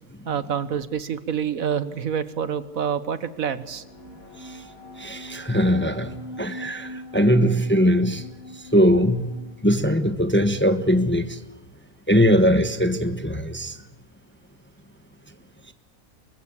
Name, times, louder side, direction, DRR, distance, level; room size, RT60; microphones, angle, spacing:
voice 1, 0.2-3.8, right 7 dB, 65° right, 1.5 m, -27 dB
sound 1, 3.6-11.2, left 1 dB, 70° left, 7.0 m, -42 dB
voice 2, 5.0-8.3 8.5-9.3 9.6-11.4 12.1-13.8 15.7-15.8, equal, 10° left, 1.1 m, -21 dB
24.5 x 21.5 x 8.5 m
omnidirectional pair, 1.6 m